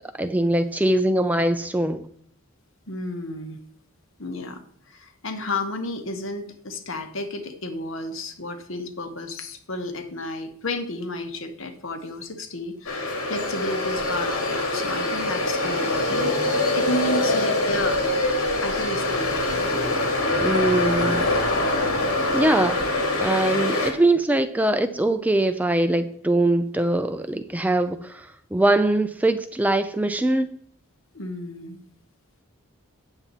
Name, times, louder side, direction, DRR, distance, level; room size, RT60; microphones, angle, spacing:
voice 1, 0.2-2.1 20.4-21.3 22.3-22.8 23.2-30.5, right 1 dB, 5° right, 10 dB, 0.3 m, -22 dB
voice 2, 2.9-3.6 4.2-18.0 18.6-19.7 31.1-31.8, left 1 dB, 65° left, 7 dB, 1.2 m, -32 dB
sound 1, 12.9-23.9, left 2 dB, 85° left, 2.1 m, -24 dB
9.0 x 7.4 x 4.0 m, 0.62 s
head